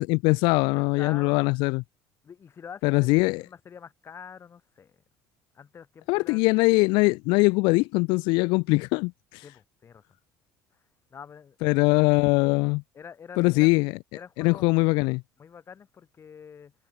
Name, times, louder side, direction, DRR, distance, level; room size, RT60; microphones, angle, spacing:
voice 1, 0.0-1.8 2.8-3.4 6.1-9.4 11.6-12.8 13.4-13.9 14.4-15.2, left 27 dB, 80° left, 0.5 m, -22 dB
voice 2, 0.7-1.5 2.2-3.1 3.4-5.0 5.5-6.5 9.4-10.0 10.7-10.8 11.1-12.2 12.9-13.7 14.1-14.7 15.4-16.7, left 7 dB, 35° left, 3.6 m, -46 dB
cardioid pair, 110°, 8 cm